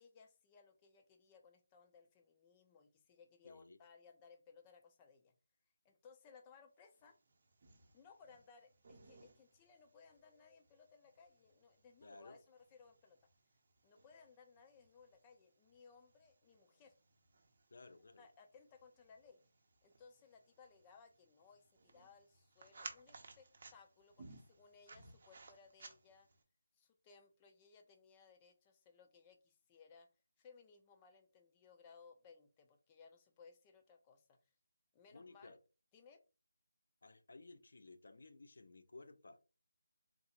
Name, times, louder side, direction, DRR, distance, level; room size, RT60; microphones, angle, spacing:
voice 1, 0.0-5.3 5.8-7.2 7.9-13.3 13.8-16.9 18.2-19.4 19.8-26.3 26.8-30.1 30.4-34.4 34.9-35.6 35.9-36.2, left 5 dB, 20° left, 0.5 m, -63 dB
voice 2, 3.4-3.8 12.0-12.4 17.7-18.3 35.1-35.6 37.0-39.4, left 3 dB, 65° left, 0.5 m, -57 dB
sound 1, 7.0-26.4, right 3 dB, 45° right, 0.7 m, -60 dB
3.8 x 2.4 x 2.9 m
figure-of-eight pair, 165°, 0 cm